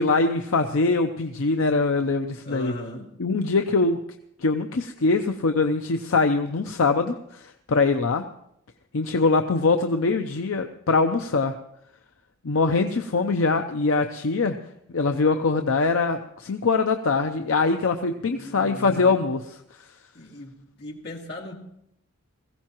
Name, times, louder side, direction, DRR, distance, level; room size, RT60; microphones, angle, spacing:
voice 1, 0.0-2.7 3.2-4.0 4.4-8.2 8.9-11.5 12.4-14.6 14.9-19.6, left 3 dB, 75° left, 6 dB, 0.6 m, -23 dB
voice 2, 2.4-3.1 18.2-19.2 20.1-20.5 20.8-21.5, left 1 dB, 55° left, -1 dB, 2.3 m, -38 dB
21.0 x 15.5 x 3.0 m, 0.76 s
head